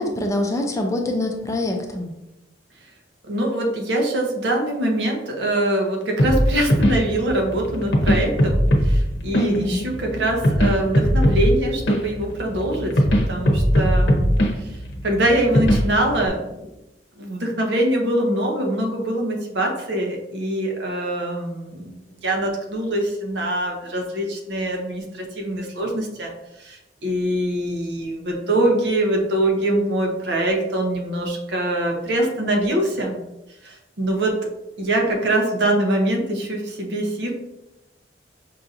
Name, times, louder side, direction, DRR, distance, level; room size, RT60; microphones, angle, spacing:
voice 1, 0.0-2.1 9.3-9.9, left 1 dB, 15° left, 2 dB, 0.4 m, -24 dB
voice 2, 3.3-14.3 14.6-14.8 15.0-16.7 17.2-26.3 26.6-33.2 33.6-34.4 34.8-37.3, right 1 dB, 70° right, 1 dB, 0.8 m, -23 dB
sound 1, 6.2-16.3, equal, 80° left, 0.8 m, -20 dB
5.5 x 2.6 x 2.5 m, 0.92 s
head